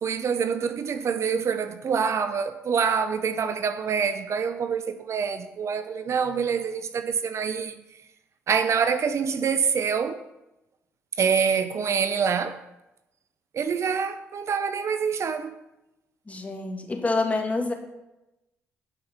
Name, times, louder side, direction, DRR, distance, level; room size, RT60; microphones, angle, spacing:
voice 1, 0.0-7.8 8.5-10.2 11.2-12.6 13.5-15.6, right 6 dB, 50° right, 0.7 m, -26 dB
voice 2, 16.3-17.7, left 3 dB, 25° left, 2.4 m, -27 dB
11.5 x 5.6 x 5.7 m
hypercardioid pair, 50°, 6 cm